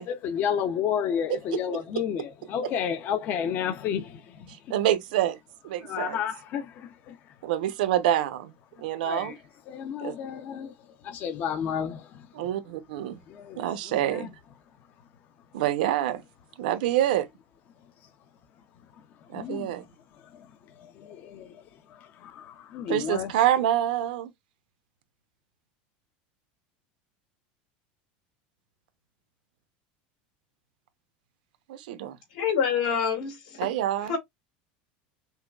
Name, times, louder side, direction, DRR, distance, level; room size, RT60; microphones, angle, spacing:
voice 1, 0.0-4.7 5.8-7.2 9.0-9.4 9.7-10.7 11.0-12.3 13.3-14.3 19.3-19.8 20.2-23.3, left 8 dB, 40° left, 0.6 m, -32 dB
voice 2, 4.7-5.4 5.6-6.2 7.4-8.5 8.8-9.3 10.0-10.1 12.3-13.2 13.6-14.3 15.5-16.2 16.6-17.3 19.3-19.8 22.9-24.3 31.7-32.2 33.6-34.2, right 12 dB, 90° right, 0.8 m, -26 dB
voice 3, 32.3-33.7 34.1-34.2, left 7 dB, 80° left, 2.4 m, -26 dB
5.6 x 2.2 x 2.3 m
supercardioid pair, 150°, 5 cm